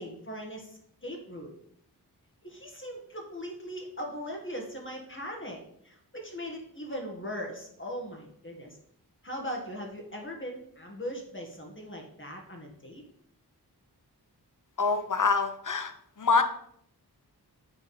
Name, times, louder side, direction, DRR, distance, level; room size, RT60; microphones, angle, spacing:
voice 1, 0.0-1.5 2.4-5.6 5.8-8.8 9.2-13.0, equal, 30° left, 0 dB, 1.6 m, -39 dB
voice 2, 14.8-16.4, left 4 dB, 50° left, 9 dB, 0.9 m, -26 dB
7.0 x 3.6 x 5.6 m, 0.69 s
cardioid pair, 45°, 40 cm